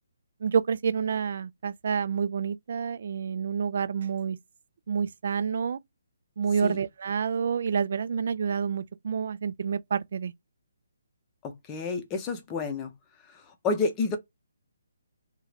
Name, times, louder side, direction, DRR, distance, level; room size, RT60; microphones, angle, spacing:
voice 1, 0.4-4.4 4.9-5.8 6.4-10.3, right 6 dB, 55° right, 0.3 m, -28 dB
voice 2, 11.7-12.9 13.6-14.2, left 4 dB, 20° left, 0.6 m, -29 dB
2.7 x 2.3 x 3.2 m
figure-of-eight pair, 145°, 0 cm